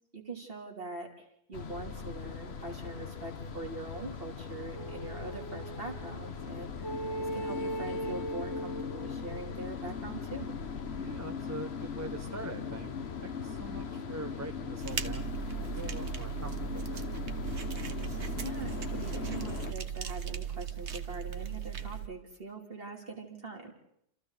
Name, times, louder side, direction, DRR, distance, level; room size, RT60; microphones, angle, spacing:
voice 1, 0.1-6.9 7.2-10.6 18.4-23.7, right 3 dB, 55° right, 0 dB, 3.4 m, -43 dB
sound 1, 1.5-19.7, left 6 dB, 65° left, 1.4 m, -39 dB
sound 2, 4.7-6.3 6.8-9.6, right 1 dB, 90° left, 2.0 m, -39 dB
voice 2, 11.0-12.9 13.2-17.1, right 1 dB, 15° right, 5 dB, 1.2 m, -43 dB
sound 3, 14.8-22.1, right 9 dB, 75° right, 1.4 m, -37 dB
28.5 x 28.0 x 4.1 m, 0.72 s
omnidirectional pair, 1.2 m